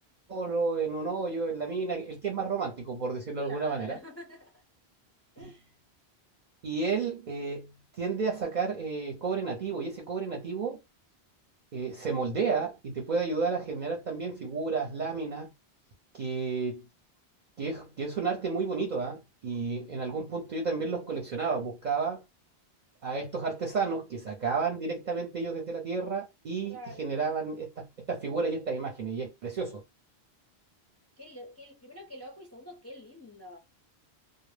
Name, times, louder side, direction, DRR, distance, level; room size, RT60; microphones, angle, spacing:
voice 1, 0.3-4.0 5.4-5.5 6.6-10.8 11.7-15.5 16.1-16.8 17.6-22.2 23.0-29.8, right 4 dB, 50° right, 0.6 m, -32 dB
voice 2, 3.4-4.6 5.4-5.7 26.7-27.1 31.2-33.6, left 1 dB, 20° left, 0.4 m, -46 dB
2.0 x 2.0 x 3.2 m
omnidirectional pair, 1.1 m